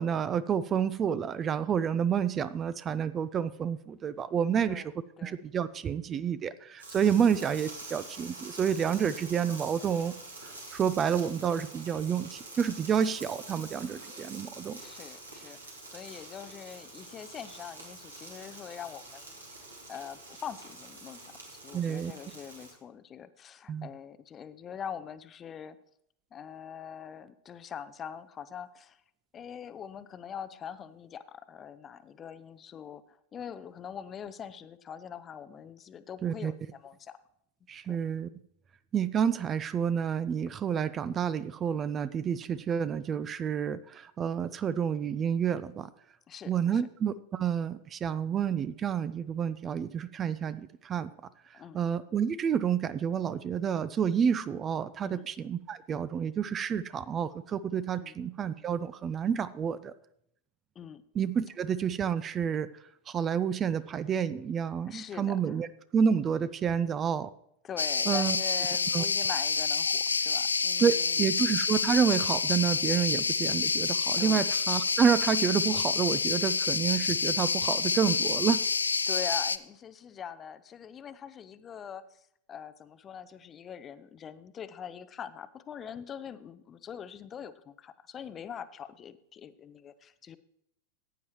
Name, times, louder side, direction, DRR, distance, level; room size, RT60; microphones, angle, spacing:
voice 1, 0.0-4.8 5.2-10.1 10.4-14.8 21.7-22.1 23.7-23.9 36.2-36.5 37.7-38.3 38.9-45.9 46.5-51.1 51.5-59.9 61.1-62.7 63.1-65.7 65.9-67.3 68.1-68.4 68.9-69.1 70.8-78.7, right 7 dB, 25° right, 15 dB, 0.4 m, -29 dB
sound 1, 6.8-22.7, right 2 dB, 75° right, 2.7 m, -46 dB
voice 2, 14.7-19.4 19.9-21.3 21.5-25.8 26.3-29.0 29.3-37.2 37.9-38.0 46.3-46.8 51.5-51.8 55.0-55.3 57.9-58.2 60.8-61.0 64.9-65.6 67.6-71.3 74.2-74.5 79.1-82.2 82.5-90.4, left 8 dB, 25° left, 14 dB, 0.6 m, -43 dB
sound 2, 67.8-79.6, left 5 dB, 75° left, 0.4 m, -28 dB
15.0 x 9.2 x 3.1 m, 0.73 s
figure-of-eight pair, 90°, 0 cm